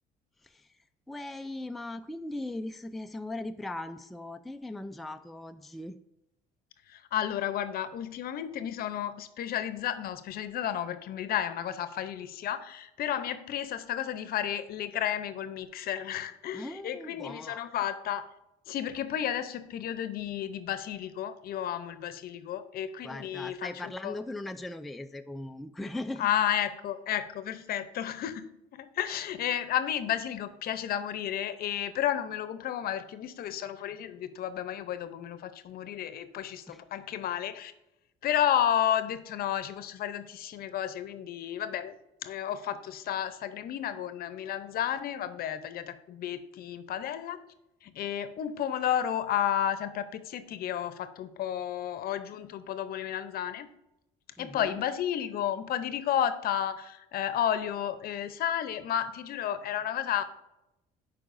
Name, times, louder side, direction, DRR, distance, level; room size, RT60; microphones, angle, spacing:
voice 1, 0.4-0.8 1.1-6.0 16.5-17.7 23.0-26.3 36.7-36.8 54.4-54.8, left 2 dB, ahead, 7 dB, 0.3 m, -39 dB
voice 2, 6.9-18.2 18.7-24.1 26.2-37.7 38.2-41.9 42.2-47.4 47.8-53.7 54.4-60.2, left 10 dB, 65° left, 12 dB, 0.7 m, -32 dB
11.5 x 4.8 x 2.6 m, 0.91 s
cardioid pair, 110°, 17 cm